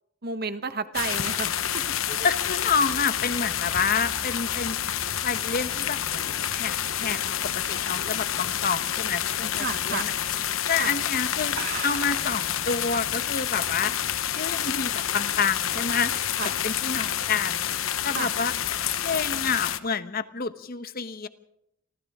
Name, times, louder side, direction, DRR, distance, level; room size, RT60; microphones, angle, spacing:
voice 1, 0.2-1.8 2.1-2.3 9.6-10.1 10.8-10.9 16.4-16.5 18.1-18.3, right 4 dB, 50° right, 10 dB, 1.2 m, -32 dB
sound 1, 0.9-19.8, left 10 dB, 85° left, 0.9 m, -28 dB
voice 2, 2.2-5.0 5.2-10.1 10.7-13.9 14.3-16.3 16.6-17.7 18.0-18.5 19.0-21.3, left 5 dB, 45° left, 11 dB, 1.1 m, -29 dB
sound 2, 5.7-8.5 8.9-9.2 9.6-9.7 10.5-10.7 11.0-11.1 11.5-12.5, right 5 dB, 90° right, 5.1 m, -39 dB
29.5 x 24.5 x 3.7 m, 0.77 s
head